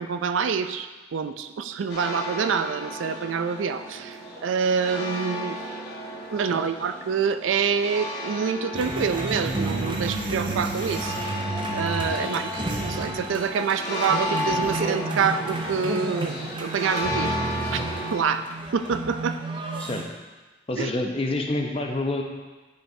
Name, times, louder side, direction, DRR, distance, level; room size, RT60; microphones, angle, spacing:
voice 1, 0.0-5.6 6.3-11.1 11.7-12.4 12.8-16.3 16.6-17.4 17.7-17.8 18.1-18.4 18.7-19.4 20.8-20.9, right 6 dB, 85° right, 9 dB, 0.4 m, -26 dB
sound 1, 1.9-18.2, left 1 dB, 60° left, 1.2 m, -34 dB
sound 2, 8.7-20.0, right 2 dB, 25° right, 0.5 m, -31 dB
voice 2, 20.7-22.2, left 2 dB, 30° left, 2 dB, 0.6 m, -28 dB
8.8 x 5.3 x 2.7 m, 1.2 s
head